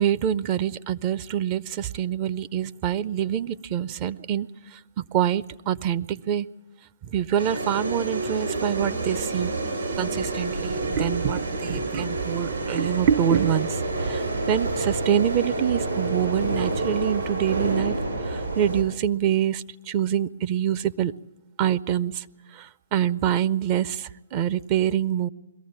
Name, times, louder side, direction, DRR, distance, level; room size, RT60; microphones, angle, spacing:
voice 1, 0.0-6.5 7.0-9.5 10.0-17.9 18.2-21.1 21.6-22.2 22.5-25.3, right 10 dB, 35° right, 14 dB, 0.6 m, -25 dB
sound 1, 7.4-18.8, right 2 dB, 85° right, 7.3 m, -28 dB
22.0 x 14.5 x 8.8 m, 1.0 s
hypercardioid pair, 135°, 0 cm